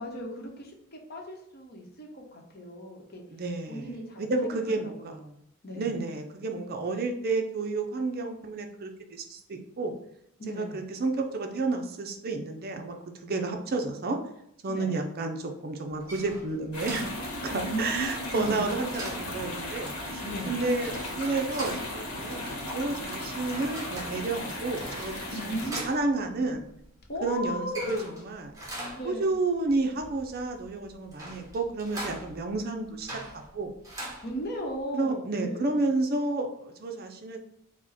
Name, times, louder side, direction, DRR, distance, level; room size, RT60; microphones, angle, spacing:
voice 1, 0.0-3.2 3.7-4.2 4.5-5.4 5.6-6.0 10.4-10.8 13.3-13.5 14.7-14.9 17.5-18.7 20.2-20.5 25.3-25.8 27.1-28.1 28.9-29.3 34.2-35.9, equal, 45° left, 1 dB, 0.9 m, -36 dB
voice 2, 3.3-3.9 4.2-5.2 5.8-10.0 10.6-13.0 13.2-14.2 14.6-25.3 25.6-26.6 27.2-28.5 29.0-33.7 34.9-37.4, right 3 dB, 45° right, 4 dB, 0.5 m, -31 dB
sound 1, 15.9-34.8, right 1 dB, 15° right, 1.3 m, -43 dB
sound 2, 16.7-25.7, left 1 dB, 85° left, 1.2 m, -36 dB
4.9 x 2.1 x 4.1 m, 0.77 s
head